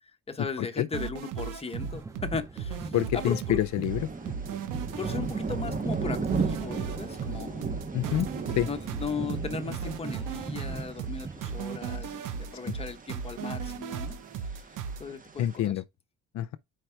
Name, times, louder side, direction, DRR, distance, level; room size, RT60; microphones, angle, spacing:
voice 1, 0.3-3.7 5.0-7.9 8.6-14.2 15.0-15.8, left 5 dB, 20° left, 1.0 m, -37 dB
sound 1, 0.9-15.0, right 7 dB, 90° right, 0.8 m, -36 dB
sound 2, 1.7-11.8, right 4 dB, 10° right, 0.4 m, -42 dB
voice 2, 2.9-4.1 7.9-8.3 8.6-8.7 12.6-12.7 15.4-15.8 16.3-16.6, left 12 dB, 65° left, 0.5 m, -27 dB
sound 3, 3.9-15.6, right 4 dB, 25° right, 0.9 m, -37 dB
4.7 x 4.6 x 4.5 m
cardioid pair, 105°, 31 cm